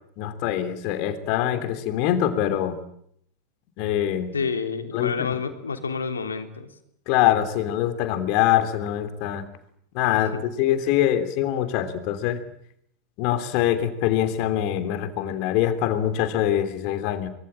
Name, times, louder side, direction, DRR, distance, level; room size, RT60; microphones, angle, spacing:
voice 1, 0.2-2.8 3.8-4.3 4.9-5.4 7.1-9.4 9.9-10.3 10.6-12.4 13.2-17.3, left 11 dB, 45° left, 9 dB, 3.2 m, -24 dB
voice 2, 4.3-6.7 10.2-10.4, left 5 dB, 70° left, 7 dB, 3.4 m, -29 dB
25.0 x 23.0 x 9.0 m, 0.72 s
figure-of-eight pair, 90°, 0 cm